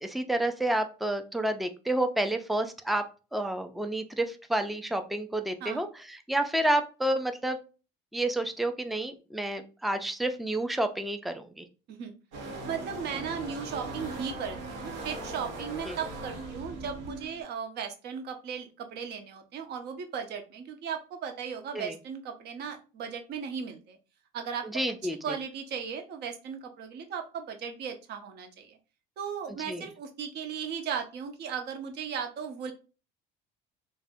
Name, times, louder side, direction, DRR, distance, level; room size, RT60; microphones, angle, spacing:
voice 1, 0.0-3.0 3.3-7.6 8.1-11.6 15.9-16.0 21.7-21.9 24.6-25.2 29.7-29.9, right 1 dB, ahead, 8 dB, 0.3 m, -30 dB
sound 1, 12.3-17.4, right 2 dB, 90° right, 0.9 m, -39 dB
voice 2, 12.7-24.0 24.3-24.6 25.2-28.8 29.2-32.7, right 7 dB, 60° right, 6 dB, 0.7 m, -36 dB
2.5 x 2.1 x 3.5 m, 0.34 s
supercardioid pair, 100°, 20 cm